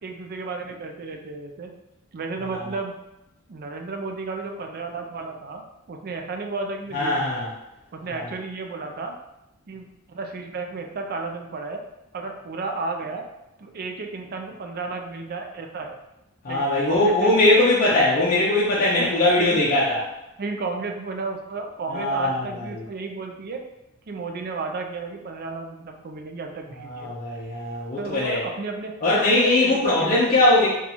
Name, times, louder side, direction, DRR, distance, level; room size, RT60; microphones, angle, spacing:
voice 1, 0.0-1.7 2.1-2.9 3.5-7.4 7.9-9.2 9.7-11.8 12.1-13.2 13.6-16.0 16.5-17.4 19.4-19.7 20.4-23.6 24.1-27.1 28.0-30.4, right 3 dB, 45° right, 4 dB, 0.4 m, -33 dB
voice 2, 6.9-7.5 8.1-8.2 16.4-20.0 21.9-22.7 26.9-28.4 29.0-30.7, left 2 dB, 40° left, -7 dB, 0.6 m, -20 dB
2.9 x 2.3 x 4.0 m, 0.91 s
head